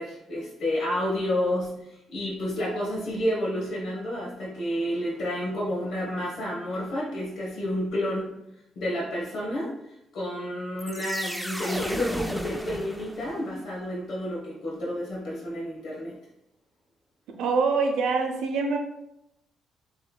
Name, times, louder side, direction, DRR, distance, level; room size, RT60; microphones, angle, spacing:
voice 1, 0.0-8.4 8.8-16.2, left 1 dB, 70° left, -4 dB, 1.1 m, -30 dB
sound 1, 10.8-13.6, equal, 5° right, 0.4 m, -34 dB
voice 2, 17.4-18.8, right 4 dB, 80° right, 3 dB, 0.6 m, -24 dB
6.6 x 3.2 x 2.3 m, 0.83 s
cardioid pair, 90°, 0 cm